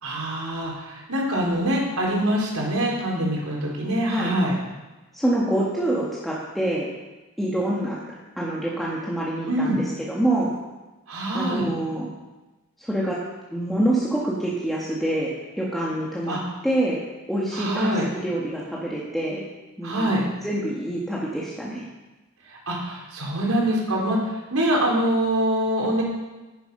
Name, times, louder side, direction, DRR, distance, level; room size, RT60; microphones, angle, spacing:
voice 1, 0.0-4.6 9.4-9.8 11.1-11.7 16.3-16.4 17.5-18.1 19.8-20.2 22.5-24.2 24.5-26.0, right 1 dB, 80° right, -3 dB, 3.8 m, -24 dB
voice 2, 5.1-6.9 7.4-8.0 8.4-10.5 11.3-12.1 12.8-13.2 13.5-15.3 15.6-17.0 17.3-19.4 19.8-20.1 20.4-21.8, right 1 dB, ahead, -6 dB, 1.5 m, -26 dB
10.5 x 10.0 x 5.5 m, 1.1 s
head